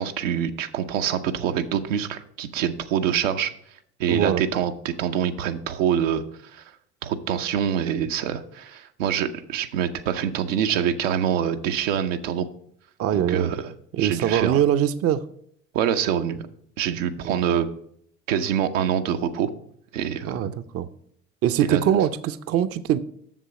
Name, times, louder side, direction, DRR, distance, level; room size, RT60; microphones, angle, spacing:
voice 1, 0.0-3.5 4.0-6.2 6.5-6.6 7.0-12.5 13.1-13.7 14.0-14.6 15.7-16.4 16.8-17.7 18.3-19.5 19.9-20.5 21.6-21.8, right 9 dB, 75° right, 6 dB, 0.7 m, -25 dB
voice 2, 4.1-4.4 13.0-13.5 13.9-15.2 17.2-17.3 20.3-20.9 21.4-23.0, right 10 dB, 35° right, 13 dB, 0.6 m, -22 dB
7.4 x 6.7 x 4.8 m, 0.67 s
hypercardioid pair, 60°, 39 cm